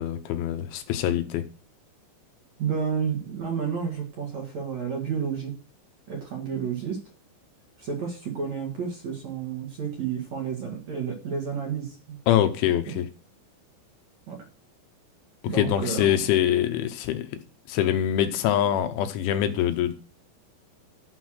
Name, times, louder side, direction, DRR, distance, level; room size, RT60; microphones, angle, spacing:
voice 1, 0.0-1.4 12.3-13.1 15.5-17.3 17.7-19.9, left 11 dB, 80° left, 9 dB, 3.2 m, -24 dB
voice 2, 2.6-5.5 6.1-7.0 7.8-12.2 12.9-13.0 14.3-14.4 15.5-16.1, right 6 dB, 50° right, 0 dB, 2.5 m, -31 dB
12.5 x 6.1 x 6.3 m, 0.38 s
omnidirectional pair, 5.5 m